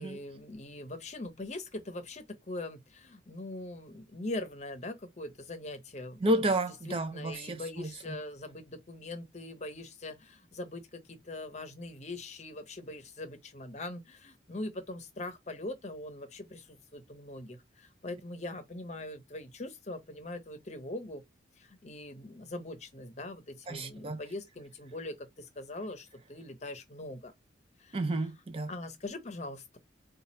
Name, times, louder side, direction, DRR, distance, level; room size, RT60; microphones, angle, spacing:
voice 1, 0.0-6.2 6.9-21.2 21.6-27.3 27.8-28.0 28.7-29.8, left 2 dB, 35° left, 0.7 m, -42 dB
voice 2, 6.2-8.2 23.7-24.2 27.9-28.7, right 1 dB, 30° right, 0.4 m, -31 dB
2.8 x 2.3 x 4.2 m
head